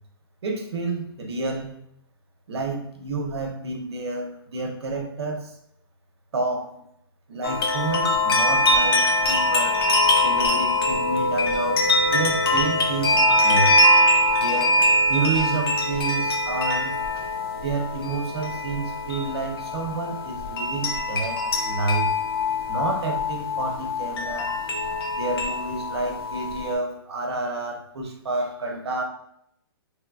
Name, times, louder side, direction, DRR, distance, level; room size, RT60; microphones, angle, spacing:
voice 1, 0.4-1.7 2.5-5.6 6.3-6.8 7.3-9.8 10.2-13.8 14.4-14.7 15.1-17.0 17.6-22.1 22.7-24.5 25.1-29.0, right 3 dB, 80° right, 2 dB, 0.9 m, -29 dB
sound 1, 7.4-26.7, left 1 dB, 65° left, 0.8 m, -23 dB
3.4 x 3.3 x 2.3 m, 0.75 s
hypercardioid pair, 150°, 14 cm